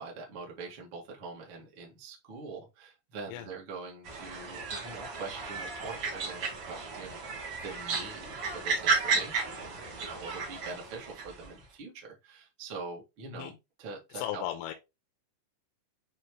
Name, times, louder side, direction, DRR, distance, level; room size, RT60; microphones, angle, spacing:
voice 1, 0.0-13.5 13.8-14.4, right 4 dB, 80° right, 1.1 m, -44 dB
sound 1, 4.0-11.5, right 4 dB, 50° right, 2.2 m, -34 dB
voice 2, 14.1-14.7, left 12 dB, 85° left, 3.2 m, -36 dB
8.9 x 3.5 x 3.0 m
omnidirectional pair, 5.7 m